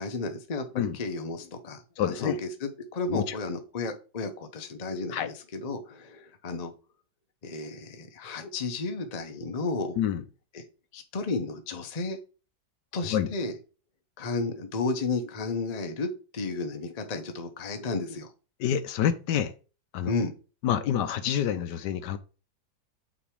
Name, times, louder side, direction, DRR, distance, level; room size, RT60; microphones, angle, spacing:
voice 1, 0.0-6.7 7.4-10.0 10.5-10.6 10.9-12.2 12.9-13.5 14.2-18.3 20.1-20.3, left 3 dB, 50° left, 6 dB, 0.4 m, -33 dB
voice 2, 2.0-2.4 3.1-3.2 5.1-5.3 10.0-10.2 13.1-13.3 18.6-19.5 19.9-20.1 20.6-22.2, left 10 dB, 75° left, 11 dB, 1.2 m, -27 dB
6.0 x 3.4 x 4.7 m, 0.34 s
omnidirectional pair, 2.1 m